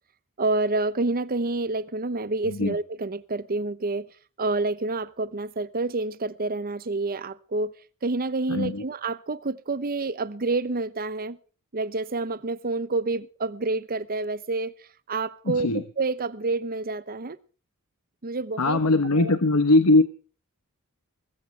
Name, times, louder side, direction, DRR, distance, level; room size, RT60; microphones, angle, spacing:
voice 1, 0.4-4.1 4.4-7.7 8.0-11.4 11.7-17.4 18.2-18.8 19.1-19.4, right 3 dB, 40° right, 0.9 m, -28 dB
voice 2, 8.5-8.8 15.5-15.8 18.6-20.0, left 2 dB, 70° left, 1.1 m, -20 dB
20.5 x 16.0 x 3.3 m
head